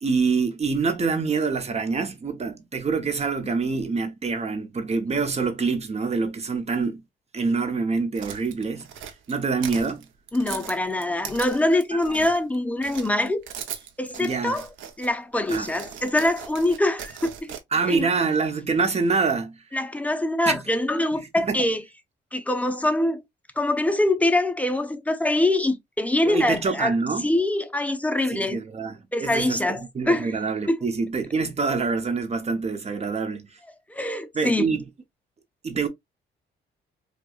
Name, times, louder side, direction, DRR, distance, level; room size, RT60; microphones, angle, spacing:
voice 1, 0.0-7.0 7.3-8.9 9.3-10.0 11.9-12.0 14.2-14.6 15.5-15.7 17.7-19.6 20.5-20.6 21.4-21.6 26.2-27.3 28.3-33.5 34.3-34.8 35.6-35.9, right 4 dB, 35° right, 0.8 m, -25 dB
sound 1, 8.1-12.5 12.8-15.1 15.5-17.6, right 8 dB, 75° right, 0.7 m, -39 dB
voice 2, 10.3-13.5 14.0-14.7 15.0-17.5 17.9-18.1 19.7-21.8 22.3-23.2 23.6-27.0 27.2-28.6 29.1-30.3 30.7-30.8 33.9-34.7, left 1 dB, 5° left, 0.6 m, -24 dB
4.6 x 2.3 x 2.3 m
cardioid pair, 90°, 20 cm